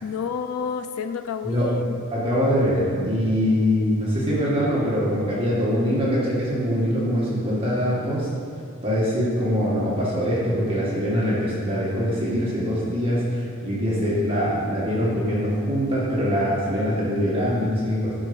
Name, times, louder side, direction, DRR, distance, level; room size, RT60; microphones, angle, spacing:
voice 1, 0.0-2.0, left 6 dB, 75° left, 9 dB, 0.4 m, -30 dB
voice 2, 2.1-8.3 8.8-18.1, equal, 25° right, -7 dB, 2.0 m, -23 dB
13.5 x 6.5 x 5.3 m, 2.4 s
head